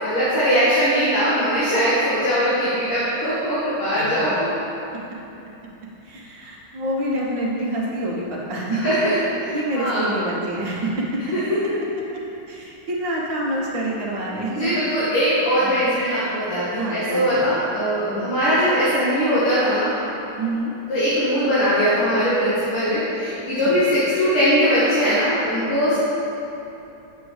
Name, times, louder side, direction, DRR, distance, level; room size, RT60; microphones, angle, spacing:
voice 1, 0.0-4.5 8.8-10.0 11.3-11.4 14.5-19.9 20.9-26.0, equal, 90° left, -12 dB, 2.6 m, -20 dB
voice 2, 6.0-8.9 9.5-11.2 12.5-14.7 15.6-15.8 16.8-17.5 18.1-18.3 20.4-20.7 23.6-23.8 25.9-26.0, right 1 dB, 60° right, -4 dB, 1.8 m, -27 dB
9.2 x 7.5 x 3.2 m, 2.9 s
omnidirectional pair, 2.3 m